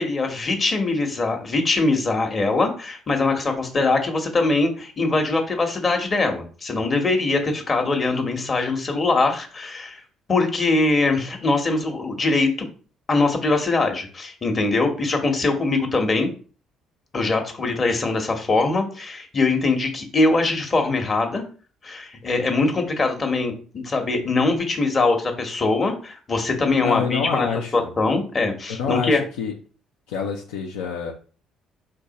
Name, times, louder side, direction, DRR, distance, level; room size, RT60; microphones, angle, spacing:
voice 1, 0.0-10.0 10.3-12.7 13.1-16.3 17.1-21.4 21.8-27.5 27.7-29.2, left 3 dB, 40° left, 4 dB, 1.1 m, -22 dB
voice 2, 26.8-27.9 28.7-29.5 30.1-31.1, left 6 dB, 80° left, 1 dB, 0.5 m, -27 dB
3.3 x 2.8 x 4.0 m, 0.39 s
hypercardioid pair, 55°, 0 cm